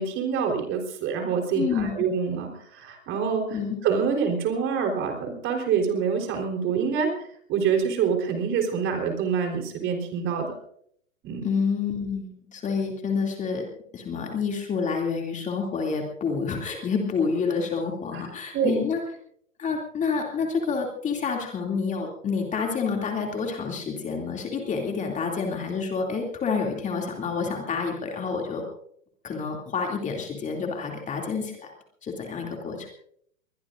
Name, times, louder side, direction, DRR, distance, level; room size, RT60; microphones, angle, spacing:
voice 1, 0.0-7.1 7.5-10.5 11.2-11.5 18.1-18.2 18.5-18.8, right 6 dB, 30° right, 3 dB, 3.8 m, -26 dB
voice 2, 1.5-1.9 3.5-3.8 11.4-13.6 13.9-19.0 19.6-28.6 29.2-31.7 32.0-32.9, left 5 dB, 15° left, 1 dB, 2.6 m, -28 dB
23.0 x 21.5 x 2.6 m, 0.67 s
figure-of-eight pair, 105°, 41 cm